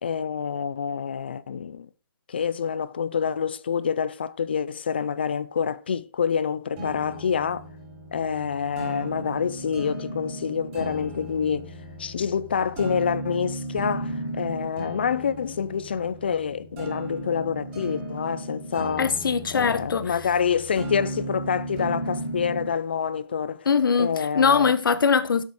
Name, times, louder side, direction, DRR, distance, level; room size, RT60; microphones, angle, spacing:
voice 1, 0.0-1.9 2.3-7.6 8.1-11.7 12.0-19.1 19.5-23.7 24.0-24.7, left 7 dB, 25° left, 0.4 m, -27 dB
sound 1, 6.8-22.8, right 1 dB, 20° right, 4.3 m, -35 dB
voice 2, 19.0-20.1 23.7-25.4, left 6 dB, 55° left, 1.0 m, -22 dB
8.3 x 7.1 x 4.8 m
hypercardioid pair, 170°, 14 cm